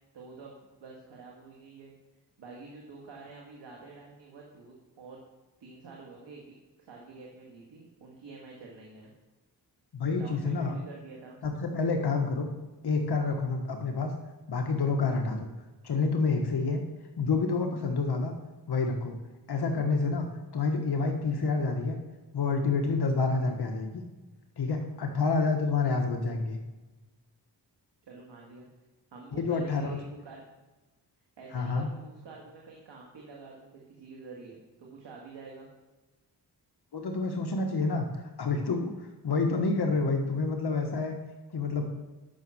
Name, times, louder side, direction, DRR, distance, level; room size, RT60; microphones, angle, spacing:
voice 1, 0.1-1.9 2.4-5.2 5.6-6.5 6.9-9.1 10.2-11.4 28.1-28.7 29.1-30.4 31.4-35.7, right 4 dB, 85° right, -2 dB, 1.8 m, -48 dB
voice 2, 9.9-10.7 11.4-12.5 12.8-14.1 14.5-15.5 15.8-16.8 17.2-18.3 18.7-19.2 19.5-20.3 20.5-22.0 22.3-24.0 24.6-26.6 29.3-30.0 31.5-31.9 36.9-38.1 38.4-41.2 41.5-41.9, left 4 dB, 65° left, 3 dB, 1.3 m, -28 dB
10.0 x 6.2 x 6.2 m, 1.2 s
cardioid pair, 80°, 42 cm